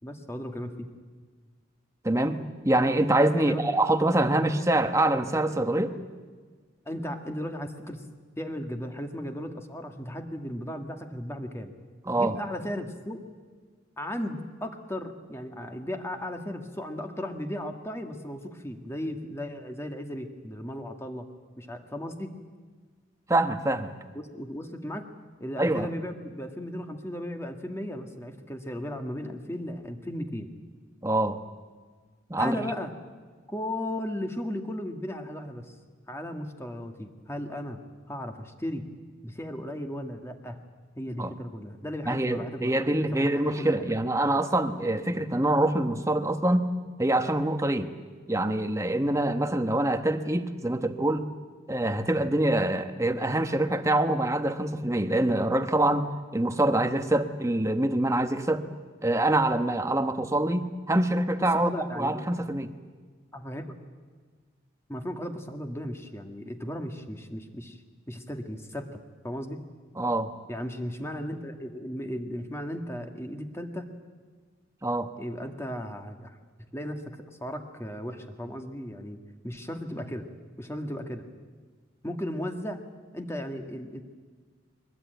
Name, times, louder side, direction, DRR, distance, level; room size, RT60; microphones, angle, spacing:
voice 1, 0.0-0.9 3.4-3.7 6.8-8.0 8.4-11.7 12.1-13.2 14.0-21.3 21.6-22.3 24.1-25.1 25.4-30.5 32.4-32.9 33.5-35.8 36.1-37.8 38.1-38.9 39.2-40.6 41.0-43.8 44.8-45.2 53.1-53.3 61.4-62.4 63.3-63.8 64.9-67.8 68.1-68.9 69.2-69.6 70.5-73.9 75.2-76.4 76.7-77.0 77.3-79.2 79.4-80.3 80.6-81.2 82.0-82.8 83.1-84.0, equal, 15° left, 5 dB, 1.6 m, -36 dB
voice 2, 2.0-2.4 2.6-6.0 12.1-12.3 23.3-23.9 25.6-25.9 31.0-31.4 32.3-32.6 41.2-41.3 42.1-46.6 47.0-47.9 48.3-51.3 51.7-56.1 56.3-58.6 59.0-61.7 61.9-62.7 70.0-70.3 74.8-75.1, right 1 dB, 15° right, 8 dB, 1.1 m, -25 dB
22.5 x 20.0 x 9.2 m, 1.5 s
head